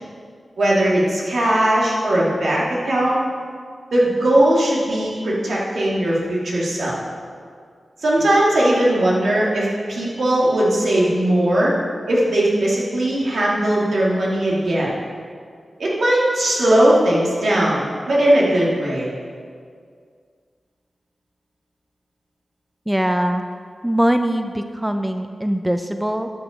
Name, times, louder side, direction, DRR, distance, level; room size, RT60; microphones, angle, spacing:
voice 1, 0.6-3.2 3.9-7.0 8.0-11.7 12.1-14.9 15.8-17.8 18.1-19.1, right 1 dB, 80° right, -6 dB, 2.5 m, -18 dB
voice 2, 22.9-23.4 23.8-26.3, equal, 10° right, 7 dB, 0.5 m, -21 dB
12.5 x 6.0 x 5.1 m, 2.1 s
cardioid pair, 45°, 0 cm